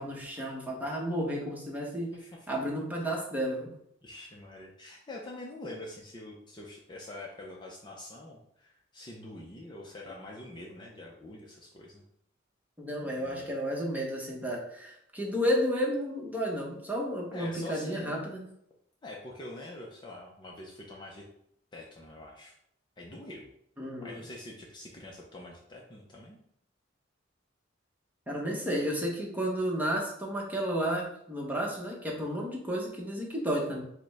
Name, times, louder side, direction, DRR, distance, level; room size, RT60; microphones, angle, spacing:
voice 1, 0.0-2.1 2.5-3.7 12.8-18.4 23.8-24.2 28.3-33.8, equal, 10° right, -2 dB, 0.9 m, -32 dB
voice 2, 4.0-12.0 13.0-13.5 17.3-18.1 19.0-21.2 21.7-22.5 23.0-23.5 24.0-26.4, left 2 dB, 25° left, -2 dB, 0.5 m, -45 dB
4.9 x 2.1 x 4.6 m, 0.73 s
head